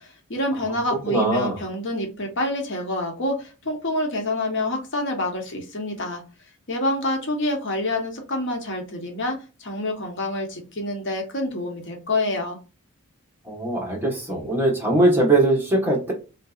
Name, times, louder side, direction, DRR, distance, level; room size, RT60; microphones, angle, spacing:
voice 1, 0.0-6.2 6.7-12.6, left 1 dB, 55° left, 2 dB, 0.9 m, -27 dB
voice 2, 1.1-1.6 13.5-16.1, right 2 dB, 10° right, -1 dB, 1.0 m, -21 dB
3.8 x 2.7 x 2.3 m, 0.31 s
head